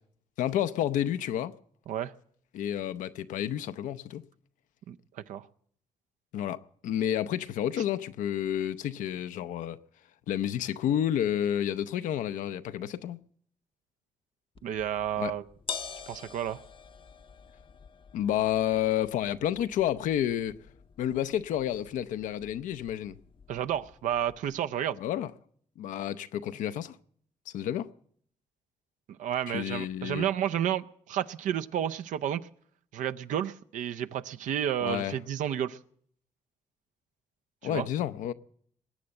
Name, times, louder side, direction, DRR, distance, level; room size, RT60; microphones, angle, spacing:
voice 1, 0.4-1.5 2.5-4.2 6.3-9.8 10.3-13.2 15.2-15.3 18.1-20.6 21.0-23.2 25.0-25.3 25.8-27.0 27.5-27.9 29.5-30.3 34.8-35.2 37.6-38.3, left 11 dB, 85° left, 0.6 m, -30 dB
sound 1, 14.5-24.6, left 6 dB, 45° left, 0.6 m, -47 dB
voice 2, 14.6-15.4 16.1-16.6 23.5-25.0 29.2-32.4 32.9-35.8 37.6-37.9, right 10 dB, 85° right, 0.6 m, -31 dB
21.0 x 8.6 x 7.7 m
cardioid pair, 70°, 13 cm